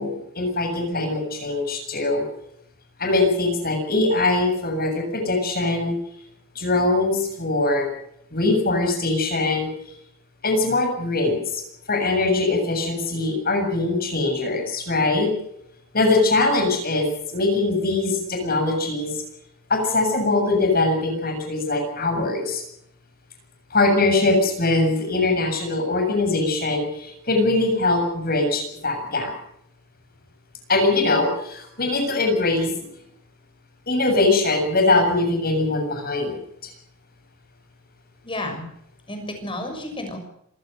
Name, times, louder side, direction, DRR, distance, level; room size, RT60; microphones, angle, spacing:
voice 1, 0.0-2.2 3.0-6.0 6.6-7.9 8.3-9.7 10.4-11.6 11.9-15.3 15.9-19.1 19.7-22.6 23.7-29.3 30.7-32.7 33.9-36.4, left 2 dB, 45° left, 4 dB, 7.5 m, -22 dB
voice 2, 38.2-38.6 39.1-40.2, left 1 dB, 25° left, 5 dB, 6.4 m, -31 dB
26.5 x 16.5 x 6.7 m, 0.73 s
head